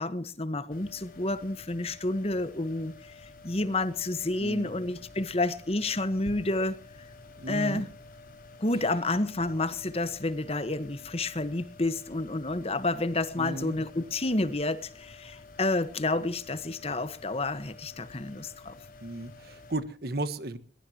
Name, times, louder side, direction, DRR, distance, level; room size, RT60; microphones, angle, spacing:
voice 1, 0.0-6.8 7.5-7.9 8.6-18.7, left 2 dB, 35° left, 1.3 m, -30 dB
sound 1, 0.7-19.7, left 3 dB, 50° left, 5.3 m, -50 dB
voice 2, 7.4-7.8 13.4-13.8 19.0-20.6, right 2 dB, 60° right, 1.5 m, -34 dB
22.0 x 21.0 x 2.9 m
head